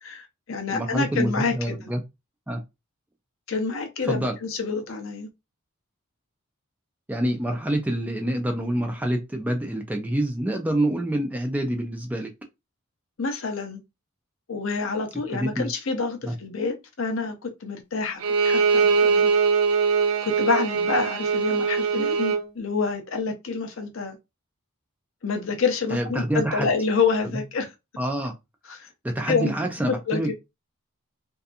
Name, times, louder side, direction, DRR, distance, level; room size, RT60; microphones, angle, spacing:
voice 1, 0.0-1.8 3.5-5.3 13.2-13.8 14.5-19.3 20.2-24.2 25.2-27.7 28.7-28.9 29.3-29.5 29.9-30.3, left 4 dB, 65° left, 0.6 m, -27 dB
voice 2, 0.7-2.0 2.5-2.6 4.1-4.3 7.1-12.3 15.3-15.7 16.2-16.3 25.9-26.7 27.3-27.4 28.0-28.3 29.0-30.3, right 1 dB, 5° right, 0.3 m, -26 dB
Bowed string instrument, 18.2-22.5, right 5 dB, 85° right, 0.5 m, -22 dB
2.7 x 2.3 x 2.4 m
head